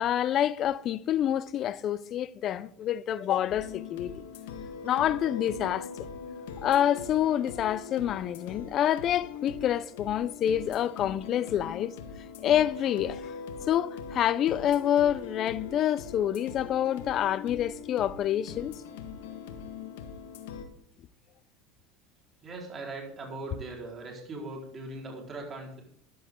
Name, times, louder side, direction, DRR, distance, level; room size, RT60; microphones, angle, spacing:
voice 1, 0.0-4.1 4.8-5.9 6.6-11.9 12.4-13.3 13.7-18.7, left 11 dB, 40° left, 0.7 m, -27 dB
sound 1, 3.5-20.6, left 6 dB, 85° left, 1.8 m, -41 dB
voice 2, 22.4-25.8, right 2 dB, 30° right, 4.5 m, -40 dB
14.0 x 11.0 x 3.8 m
supercardioid pair, 135°, 0 cm